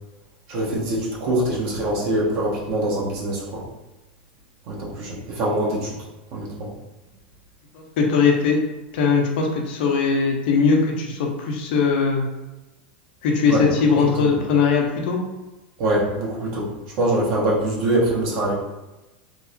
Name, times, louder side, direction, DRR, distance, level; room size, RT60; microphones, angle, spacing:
voice 1, 0.5-3.6 4.7-5.9 6.3-6.7 13.5-13.6 14.0-14.1 15.8-16.7 17.0-18.5, right 1 dB, 55° right, -5 dB, 1.0 m, -23 dB
voice 2, 7.7-8.6 8.9-12.3 13.2-15.2, left 5 dB, 60° left, 1 dB, 0.6 m, -20 dB
2.8 x 2.0 x 2.6 m, 1.0 s
hypercardioid pair, 90°, 6 cm